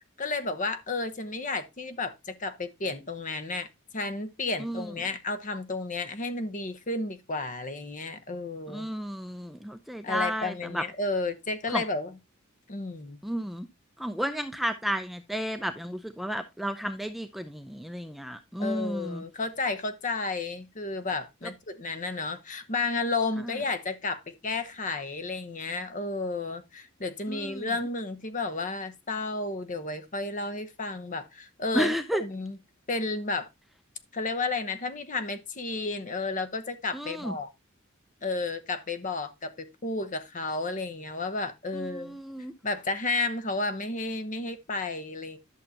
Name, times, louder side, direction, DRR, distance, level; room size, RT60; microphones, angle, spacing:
voice 1, 0.2-3.7 3.9-8.9 10.0-12.2 12.7-13.2 18.6-31.9 32.2-32.6 32.9-33.5 34.1-37.5 38.2-42.2 42.6-45.4, left 3 dB, 40° left, 1.0 m, -32 dB
voice 2, 4.6-4.9 8.7-10.8 11.7-11.8 13.2-13.7 14.0-19.2 23.5-23.6 27.3-27.7 31.7-32.2 36.9-37.4 41.7-42.5, equal, ahead, 0.5 m, -32 dB
11.5 x 6.5 x 2.8 m
head